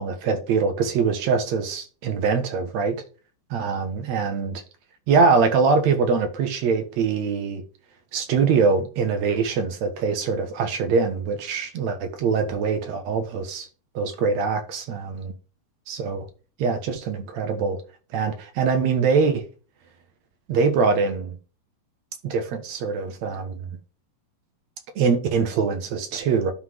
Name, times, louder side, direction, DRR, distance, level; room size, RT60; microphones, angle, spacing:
voice 1, 0.0-3.0 3.5-4.6 5.1-7.6 8.1-13.7 13.9-15.3 15.9-16.3 16.6-17.8 18.1-19.4 20.5-21.4 22.2-23.6 25.0-26.5, right 5 dB, 70° right, 2.4 m, -23 dB
11.5 x 3.9 x 3.7 m
omnidirectional pair, 3.4 m